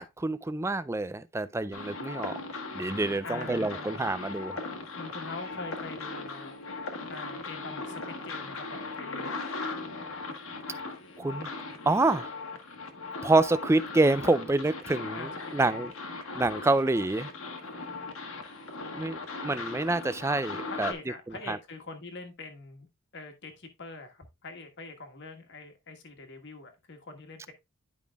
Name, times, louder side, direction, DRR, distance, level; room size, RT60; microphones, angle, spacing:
voice 1, 0.0-2.4 2.7-4.5 11.2-11.5 11.9-12.3 13.2-15.9 16.4-17.3 18.9-20.9 21.3-21.6, right 2 dB, 10° right, 0.3 m, -27 dB
sound 1, 1.7-20.9, left 3 dB, 65° left, 1.4 m, -38 dB
voice 2, 3.2-3.9 5.0-6.6 7.1-9.3 15.1-15.3 15.6-15.9 20.7-22.9 23.1-27.5, left 3 dB, 50° left, 1.5 m, -44 dB
11.0 x 5.1 x 2.3 m
head